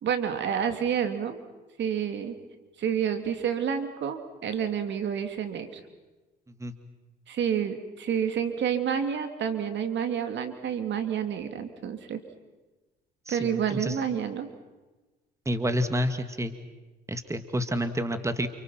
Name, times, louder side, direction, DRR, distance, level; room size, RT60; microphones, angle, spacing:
voice 1, 0.0-1.4 1.8-2.4 2.8-5.8 7.3-12.2 13.3-14.5, right 8 dB, 60° right, 8 dB, 3.1 m, -29 dB
voice 2, 13.3-14.0 15.5-16.5 17.1-18.5, equal, 15° right, 9 dB, 2.2 m, -29 dB
29.0 x 29.0 x 6.0 m, 1.2 s
supercardioid pair, 75°, 21 cm